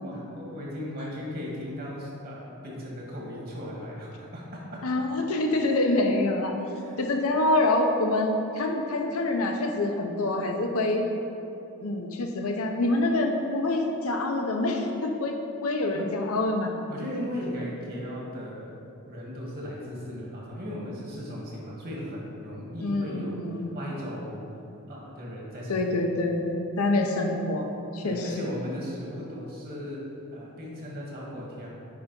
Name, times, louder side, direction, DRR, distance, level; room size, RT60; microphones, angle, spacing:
voice 1, 0.0-4.8 6.7-7.0 15.9-16.1 16.9-23.4 23.7-24.4 24.9-26.0 28.0-30.0 30.3-31.7, left 1 dB, 45° right, -4 dB, 1.6 m, -37 dB
voice 2, 4.8-6.5 7.0-11.1 11.8-15.3 15.6-16.7 22.8-23.7 25.7-27.7 27.9-28.5, left 2 dB, 80° left, 3 dB, 0.8 m, -26 dB
9.5 x 3.5 x 5.3 m, 2.7 s
head